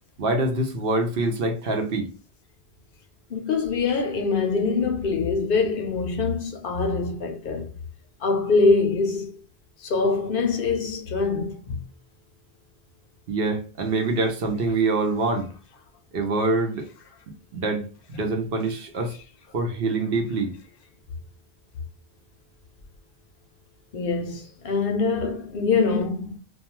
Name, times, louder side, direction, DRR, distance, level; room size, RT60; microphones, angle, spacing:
voice 1, 0.2-2.1 13.3-15.5 16.1-16.9 17.5-19.1 19.5-20.5, right 3 dB, 60° right, 0.8 m, -25 dB
voice 2, 3.3-7.7 8.2-9.4 9.8-11.8 23.9-26.4, left 4 dB, 65° left, 0.7 m, -24 dB
2.3 x 2.3 x 2.9 m
omnidirectional pair, 1.1 m